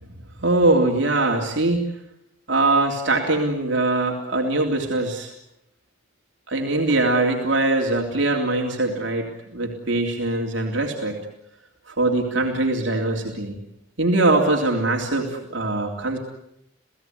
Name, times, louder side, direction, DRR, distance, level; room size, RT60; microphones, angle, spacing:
voice 1, 0.4-1.9 2.5-5.3 6.5-11.2 11.9-13.6 14.0-16.2, right 2 dB, 65° right, 0 dB, 3.4 m, -22 dB
29.5 x 17.5 x 9.6 m, 0.79 s
head